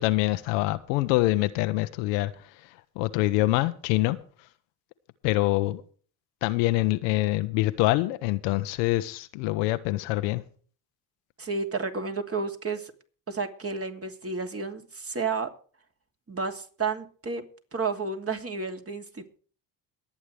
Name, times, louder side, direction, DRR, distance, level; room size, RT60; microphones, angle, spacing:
voice 1, 0.0-2.3 3.0-4.2 5.2-5.8 6.4-10.4, left 18 dB, 80° left, 1.1 m, -25 dB
voice 2, 11.4-12.9 13.3-15.5 16.3-17.4 17.7-19.4, right 4 dB, 30° right, 2.9 m, -31 dB
22.5 x 8.8 x 3.4 m
hypercardioid pair, 65°, 49 cm